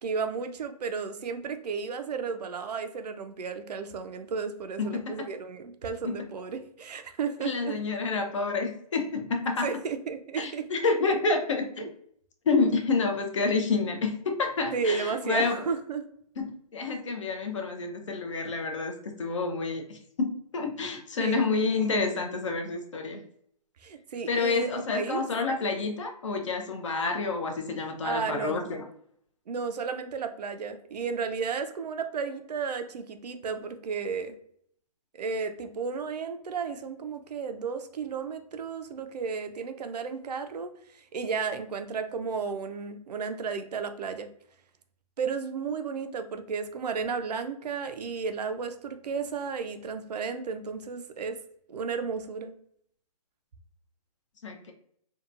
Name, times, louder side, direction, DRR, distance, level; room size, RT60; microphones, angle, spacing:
voice 1, 0.0-7.8 9.6-10.6 14.7-16.1 21.2-21.5 23.8-25.2 28.0-28.7 29.5-34.4 35.1-44.3 45.2-51.4 51.7-52.6, right 5 dB, 80° right, 8 dB, 0.4 m, -33 dB
voice 2, 4.8-5.3 6.0-6.2 7.4-9.7 10.4-11.9 12.5-15.6 16.4-23.2 24.3-28.8 54.4-54.7, left 4 dB, 50° left, 4 dB, 0.5 m, -29 dB
2.7 x 2.2 x 2.4 m, 0.66 s
hypercardioid pair, 170°, 20 cm